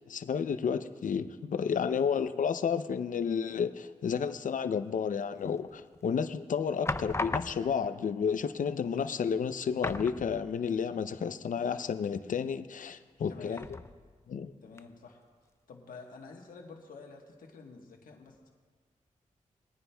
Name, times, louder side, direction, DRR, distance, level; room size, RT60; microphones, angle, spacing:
voice 1, 0.1-13.6 14.3-14.5, left 6 dB, 70° left, 11 dB, 0.6 m, -31 dB
sound 1, 5.6-6.1 6.8-7.9 8.9-9.0 9.3-9.4 9.8-10.8 11.1-11.2 13.5-14.2 14.8-14.9, left 2 dB, 20° left, 0.5 m, -37 dB
voice 2, 13.3-13.7 14.6-15.2 15.7-18.5, left 4 dB, 85° left, 1 dB, 1.2 m, -49 dB
21.5 x 9.6 x 2.3 m, 1.5 s
cardioid pair, 55°, 14 cm